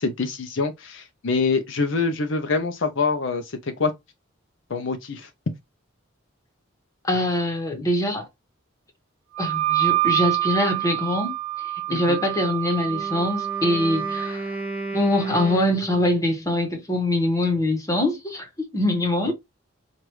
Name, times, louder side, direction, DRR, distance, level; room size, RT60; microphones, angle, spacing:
voice 1, 0.0-3.5 3.8-3.9 4.7-5.3 11.9-12.2 19.3-19.4, left 4 dB, 65° left, 0.6 m, -25 dB
voice 2, 7.0-8.3 9.4-11.3 11.9-14.5 14.9-19.3, left 1 dB, 15° left, 1.0 m, -23 dB
Wind instrument woodwind instrument, 9.3-14.3, right 17 dB, 75° right, 0.6 m, -26 dB
Wind instrument woodwind instrument 2, 12.8-16.3, right 2 dB, 5° right, 0.8 m, -33 dB
4.7 x 2.5 x 3.1 m
head